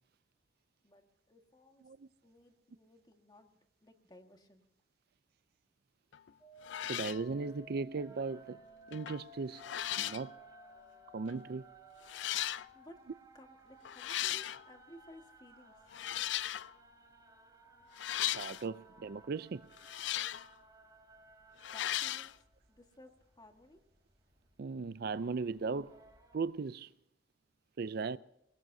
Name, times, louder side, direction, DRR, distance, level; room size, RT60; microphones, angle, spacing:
voice 1, 0.8-1.9 2.2-4.6 12.7-13.0 13.3-15.8 21.5-23.8, left 1 dB, 25° left, 1.6 m, -58 dB
sound 1, 6.1-6.3 6.6-7.2 8.9-9.2 9.6-10.3 11.3-11.4 12.1-12.7 13.8-14.6 15.9-16.7 18.0-18.6 19.8-20.5 21.6-22.3, left 12 dB, 75° left, 0.4 m, -37 dB
sound 2, 6.4-19.3, right 1 dB, 5° left, 6.9 m, -59 dB
sound 3, 6.6-26.5, right 2 dB, 20° right, 3.3 m, -63 dB
voice 2, 6.8-8.6 8.9-9.6 10.0-10.3 11.1-11.6 18.3-19.6 24.6-26.0 26.3-26.9 27.8-28.2, right 4 dB, 55° right, 0.4 m, -37 dB
22.5 x 18.5 x 2.7 m
head